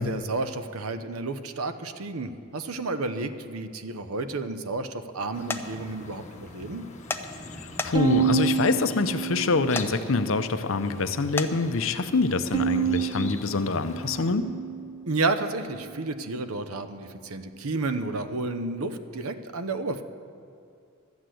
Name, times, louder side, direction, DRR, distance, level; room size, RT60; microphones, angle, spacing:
voice 1, 0.0-6.8 15.1-20.0, right 3 dB, 90° right, 9 dB, 0.8 m, -31 dB
sound 1, 5.3-14.3, left 3 dB, 35° left, 1.1 m, -44 dB
sound 2, 5.5-5.6 7.1-7.2 7.8-8.2 9.8-9.9 11.4-11.5, left 3 dB, 10° left, 0.5 m, -30 dB
voice 2, 7.8-14.5, left 3 dB, 65° left, 10 dB, 0.7 m, -25 dB
Bowed string instrument, 7.9-10.3 10.8-11.5 12.5-15.0, right 7 dB, 20° right, 0.8 m, -29 dB
13.0 x 8.3 x 7.7 m, 2.5 s
head